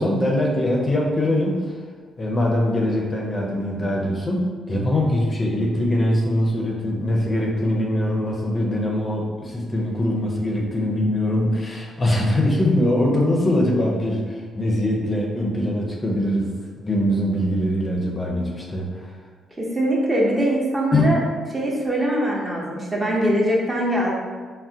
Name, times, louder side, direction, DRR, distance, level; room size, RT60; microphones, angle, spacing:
voice 1, 0.0-1.7 2.2-19.1 20.9-21.2, left 1 dB, 25° left, -2 dB, 0.5 m, -22 dB
voice 2, 19.6-21.2 21.5-24.1, equal, 25° right, -3 dB, 0.7 m, -22 dB
3.5 x 2.1 x 2.7 m, 1.5 s
cardioid pair, 90°, 0 cm